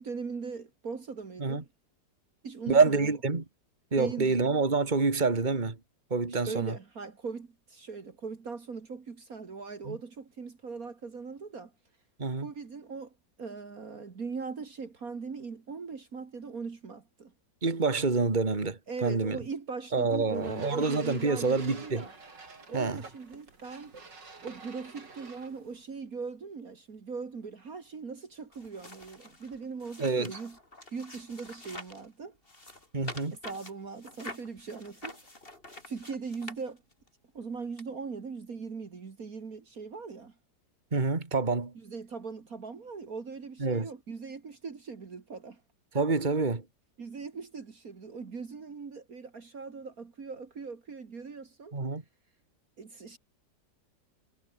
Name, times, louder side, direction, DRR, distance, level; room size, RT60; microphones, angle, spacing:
voice 1, 0.0-1.7 2.4-3.2 4.0-4.5 6.3-11.7 12.4-13.1 13.4-17.3 18.9-22.1 22.7-23.9 24.4-30.6 30.9-32.4 33.3-35.2 35.9-36.8 37.3-40.3 41.8-45.6 47.0-51.7 52.8-53.2, right 5 dB, 55° right, 2.4 m, -40 dB
voice 2, 2.7-3.4 3.9-5.8 6.1-6.7 9.9-10.0 12.2-12.5 17.6-19.4 19.9-22.0 22.7-23.0 30.0-30.4 32.9-33.4 40.9-41.7 43.6-43.9 45.9-46.6 51.7-52.0, right 4 dB, 25° right, 2.5 m, -27 dB
sound 1, 20.3-25.8, right 3 dB, 85° right, 4.8 m, -49 dB
sound 2, 28.5-32.1 32.4-37.1 37.8-37.9, left 2 dB, 30° left, 4.8 m, -47 dB
omnidirectional pair, 1.9 m